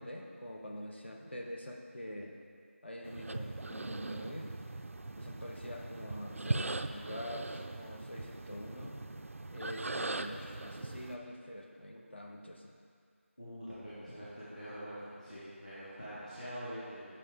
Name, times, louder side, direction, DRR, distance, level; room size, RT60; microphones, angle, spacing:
voice 1, 0.0-2.4 2.8-4.5 5.2-8.9 9.5-12.7, equal, 55° left, 1 dB, 0.8 m, -45 dB
sound 1, 3.0-11.1, right 2 dB, 70° right, 0.3 m, -40 dB
voice 2, 13.4-17.1, equal, 35° left, -12 dB, 1.4 m, -44 dB
8.7 x 5.6 x 3.5 m, 2.1 s
figure-of-eight pair, 180°, 7 cm